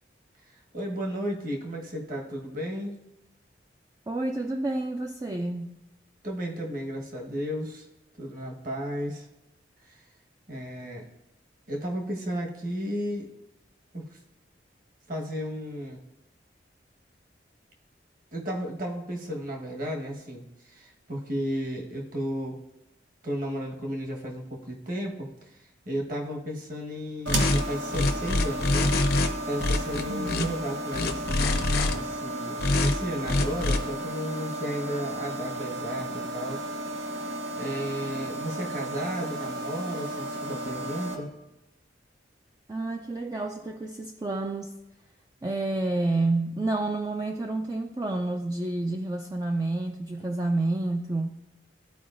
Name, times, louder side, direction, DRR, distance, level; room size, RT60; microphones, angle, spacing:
voice 1, 0.5-3.0 6.2-7.9 8.2-9.3 9.8-10.0 10.5-11.0 11.7-13.3 13.9-14.2 15.1-16.0 18.3-22.6 23.2-28.9 29.4-36.7 37.0-41.3, equal, 45° right, 0 dB, 1.3 m, -34 dB
voice 2, 4.1-5.8 30.1-30.6 42.7-44.7 45.4-51.3, right 2 dB, 20° right, 3 dB, 0.3 m, -29 dB
sound 1, 27.3-27.6 27.9-29.3 29.6-30.5 30.9-31.9 32.6-32.9 33.3-33.8, left 2 dB, 55° left, 0.6 m, -24 dB
sound 2, 27.3-41.2, right 1 dB, 85° right, 1.0 m, -34 dB
13.5 x 4.6 x 2.5 m, 0.91 s
head